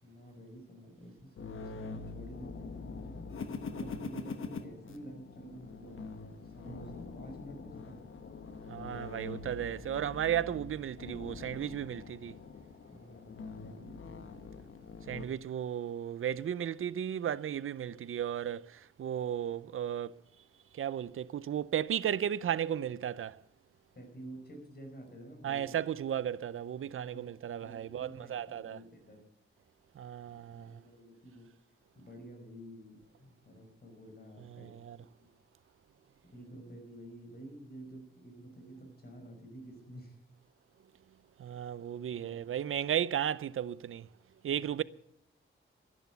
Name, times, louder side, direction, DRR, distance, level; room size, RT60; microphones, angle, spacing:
voice 1, 0.0-3.3 3.7-6.0 6.4-8.0 12.9-14.6 23.9-25.8 26.9-29.2 30.3-31.5 32.0-34.7 35.0-35.3 36.3-40.2, right 1 dB, 50° left, 5.2 m, -50 dB
sound 1, 1.4-15.3, left 4 dB, 75° left, 1.2 m, -44 dB
voice 2, 8.7-12.3 15.1-20.2 20.7-23.4 25.4-28.8 30.0-30.8 34.6-35.0 41.4-44.1 44.4-44.8, right 10 dB, 80° right, 0.5 m, -35 dB
12.5 x 11.0 x 8.2 m
wide cardioid pair, 110°, 21 cm